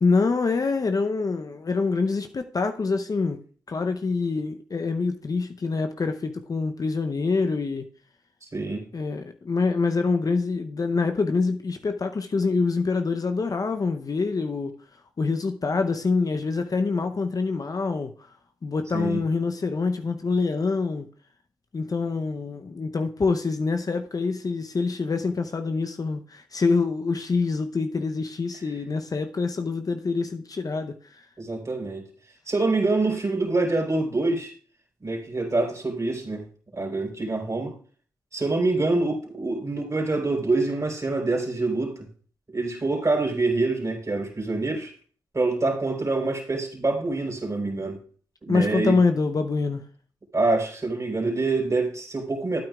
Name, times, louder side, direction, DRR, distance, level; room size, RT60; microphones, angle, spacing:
voice 1, 0.0-3.4 3.7-7.9 8.9-14.7 15.2-18.1 18.6-21.1 21.7-31.2 48.5-49.8, left 4 dB, 40° left, 0.7 m, -25 dB
voice 2, 8.5-8.8 18.9-19.2 31.4-32.0 32.5-34.5 35.0-36.4 36.7-37.7 38.3-42.0 42.5-44.9 45.3-48.0 48.4-49.0 50.3-52.6, right 3 dB, 35° right, 3.8 m, -25 dB
12.5 x 8.9 x 2.4 m
hypercardioid pair, 40°, 9 cm